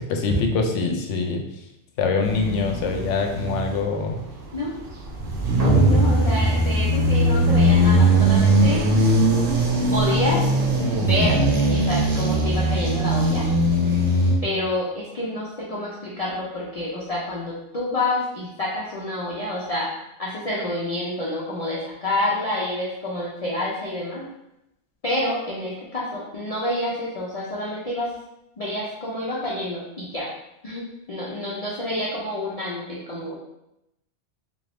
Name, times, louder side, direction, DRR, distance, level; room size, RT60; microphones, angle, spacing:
voice 1, 0.1-1.4 2.0-4.2, left 4 dB, 85° left, 3 dB, 0.9 m, -24 dB
sound 1, 2.2-3.9 4.5-14.4, right 1 dB, 80° right, 1.0 m, -20 dB
sound 2, 5.6-7.7, right 2 dB, 35° right, 0.8 m, -23 dB
voice 2, 5.8-8.8 9.9-10.4 11.0-13.5 14.4-19.9 20.2-24.2 25.0-28.1 28.6-30.3 30.6-33.4, left 1 dB, 40° left, -6 dB, 0.5 m, -28 dB
3.6 x 2.6 x 3.3 m, 0.86 s
omnidirectional pair, 1.2 m